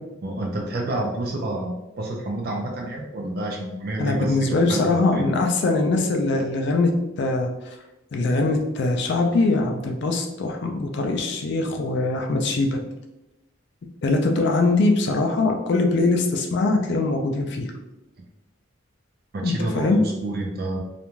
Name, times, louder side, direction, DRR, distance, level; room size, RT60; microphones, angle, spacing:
voice 1, 0.2-5.3 19.3-20.8, right 1 dB, 50° right, 0 dB, 0.4 m, -29 dB
voice 2, 4.0-6.9 7.2-7.5 8.1-12.8 14.0-17.7 19.4-20.0, left 3 dB, 55° left, 3 dB, 0.3 m, -22 dB
2.5 x 2.2 x 3.0 m, 0.95 s
head